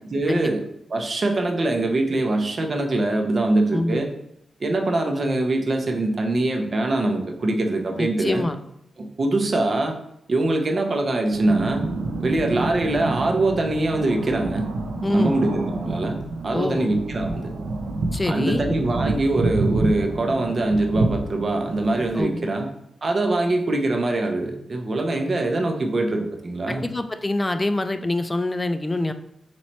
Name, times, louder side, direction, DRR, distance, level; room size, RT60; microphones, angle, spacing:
voice 1, 0.1-0.6 0.9-4.1 4.6-8.4 9.0-9.9 10.3-11.8 12.2-14.6 15.1-17.5 18.2-22.7 23.0-26.9, right 2 dB, 50° right, 3 dB, 0.6 m, -23 dB
voice 2, 8.0-8.6 15.0-15.4 16.5-16.9 18.1-18.6 22.1-22.5 26.7-29.1, left 2 dB, 20° left, 9 dB, 0.3 m, -25 dB
sound 1, 11.3-22.2, right 2 dB, 85° right, 0.4 m, -28 dB
3.1 x 3.0 x 4.1 m, 0.76 s
cardioid pair, 65°, 0 cm